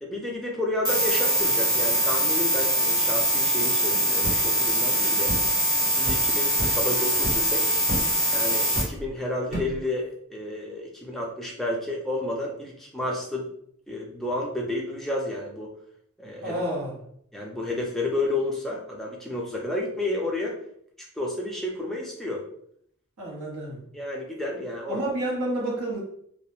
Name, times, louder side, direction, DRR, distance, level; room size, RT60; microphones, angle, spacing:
voice 1, 0.0-5.3 6.0-7.7 8.3-13.5 13.9-15.7 16.2-16.6 17.3-20.6 21.2-22.4 23.9-25.0, left 1 dB, ahead, -2 dB, 0.4 m, -31 dB
sound 1, 0.8-8.8, equal, 15° right, 1.0 m, -23 dB
sound 2, 4.2-4.4 5.3-5.5 6.0-6.2 6.6-6.8 7.2-7.5 7.9-8.1 8.7-9.1 9.5-9.8, equal, 40° right, 1.0 m, -30 dB
voice 2, 16.4-17.0 23.2-23.8 24.9-26.0, right 1 dB, 85° right, -3 dB, 0.9 m, -29 dB
2.2 x 2.0 x 2.9 m, 0.67 s
head